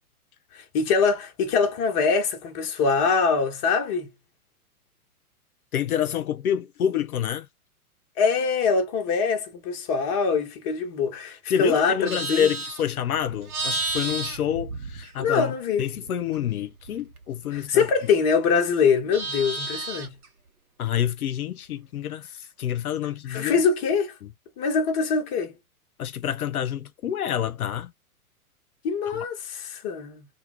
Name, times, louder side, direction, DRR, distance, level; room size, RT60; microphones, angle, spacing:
voice 1, 0.5-4.1 8.2-12.5 15.2-15.8 17.5-20.1 23.3-24.1 24.6-25.5 28.8-30.3, left 5 dB, 25° left, 0.6 m, -23 dB
voice 2, 5.7-7.5 11.5-17.9 20.8-23.6 24.2-24.3 26.0-27.9 29.0-29.2, left 9 dB, 70° left, 0.5 m, -28 dB
Livestock farm animals working animals, 11.8-15.5 15.8-18.4 18.7-20.3, right 3 dB, 75° right, 0.9 m, -33 dB
2.3 x 2.3 x 2.9 m
figure-of-eight pair, 110°, 45 cm